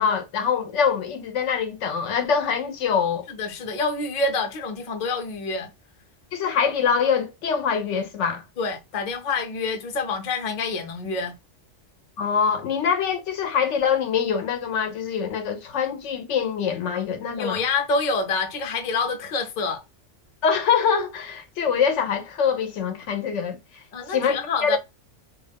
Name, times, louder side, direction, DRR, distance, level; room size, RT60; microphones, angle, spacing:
voice 1, 0.0-3.3 6.3-8.4 12.2-17.6 20.4-23.6 24.1-24.4 24.6-24.8, left 6 dB, 80° left, 0.9 m, -24 dB
voice 2, 3.3-5.7 8.6-11.3 17.3-19.8 23.9-24.8, left 4 dB, 50° left, 0.7 m, -27 dB
2.4 x 2.3 x 3.4 m
omnidirectional pair, 1.2 m